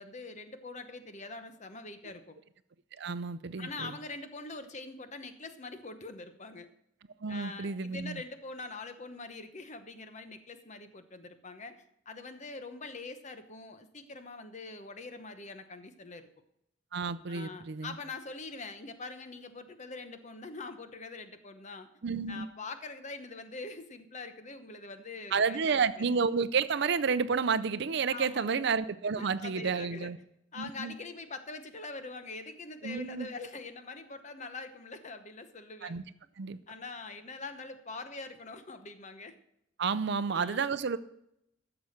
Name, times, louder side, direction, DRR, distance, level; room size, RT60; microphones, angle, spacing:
voice 1, 0.0-2.4 3.6-6.7 7.3-16.2 17.3-21.9 22.3-26.1 28.1-28.6 29.2-30.1 30.5-36.0 36.7-39.3 40.3-40.6, left 3 dB, 35° left, 9 dB, 0.9 m, -44 dB
voice 2, 3.0-3.9 7.2-8.2 16.9-17.9 22.0-22.5 25.3-30.2 30.6-30.9 32.8-33.3 35.8-36.0 36.4-36.6 39.8-41.0, right 5 dB, 60° right, 14 dB, 0.5 m, -30 dB
12.5 x 7.0 x 6.4 m, 0.77 s
head